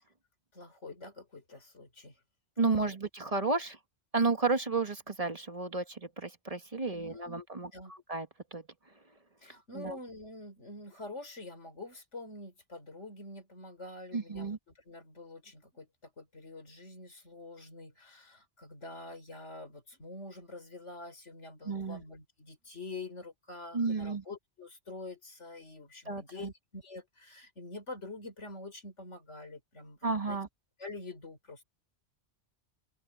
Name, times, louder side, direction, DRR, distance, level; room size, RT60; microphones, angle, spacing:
voice 1, 0.5-2.2 2.6-2.7 6.8-7.9 9.4-30.4 30.8-31.6, left 2 dB, 90° left, 4.5 m, -46 dB
voice 2, 2.6-3.8 4.1-7.7 8.1-8.3 8.5-8.6 9.8-9.9 14.1-14.6 21.6-22.0 23.7-24.2 26.1-26.5 30.0-30.5, right 4 dB, 30° right, 1.7 m, -32 dB
open air
omnidirectional pair, 1.2 m